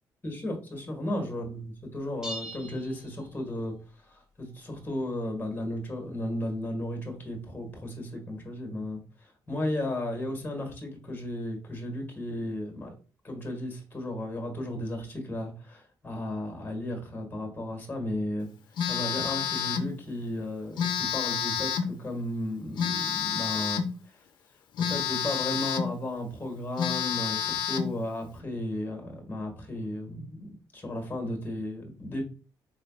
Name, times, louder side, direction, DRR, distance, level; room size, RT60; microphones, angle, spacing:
voice 1, 0.2-3.7 4.1-12.9 13.2-18.5 18.9-24.2 24.8-32.2, left 1 dB, 25° left, 3 dB, 1.7 m, -34 dB
sound 1, 2.2-3.8, equal, 5° right, 1.5 m, -42 dB
Telephone, 18.8-19.9 20.8-22.0 22.8-24.0 24.8-26.0 26.4-26.5 26.8-28.0, left 8 dB, 75° left, 0.6 m, -29 dB
4.6 x 3.2 x 2.3 m, 0.36 s
cardioid pair, 115°, 8 cm